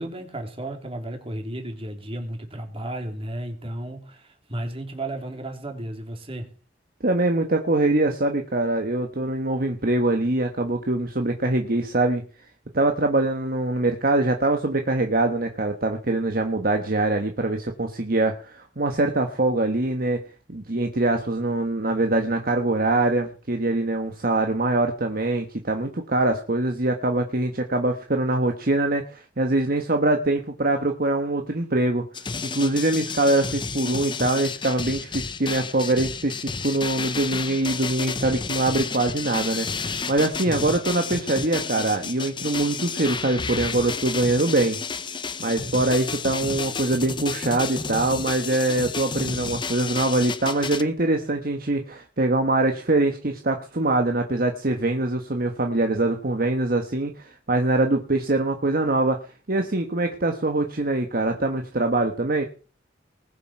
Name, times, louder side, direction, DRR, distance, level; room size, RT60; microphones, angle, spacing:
voice 1, 0.0-6.5 40.4-40.6, right 1 dB, 30° right, 4 dB, 3.1 m, -33 dB
voice 2, 7.0-12.2 12.7-20.2 20.5-32.0 32.4-44.8 45.4-59.2 59.5-62.4, right 2 dB, 55° right, 4 dB, 1.3 m, -23 dB
sound 1, 32.1-50.8, left 5 dB, 25° left, 0.8 m, -31 dB
20.0 x 7.6 x 5.9 m, 0.38 s
head